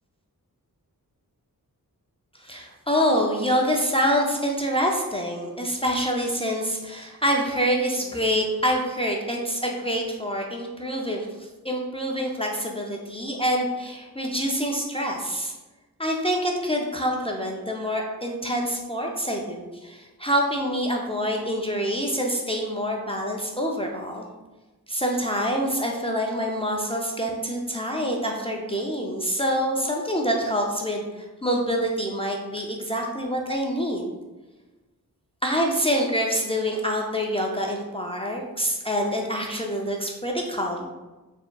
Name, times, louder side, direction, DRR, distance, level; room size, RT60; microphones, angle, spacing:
voice 1, 2.4-11.3 11.6-15.5 16.0-24.3 24.9-34.1 35.4-40.8, equal, 15° left, -1 dB, 0.4 m, -26 dB
4.4 x 3.5 x 2.3 m, 1.2 s
wide cardioid pair, 95°, 36 cm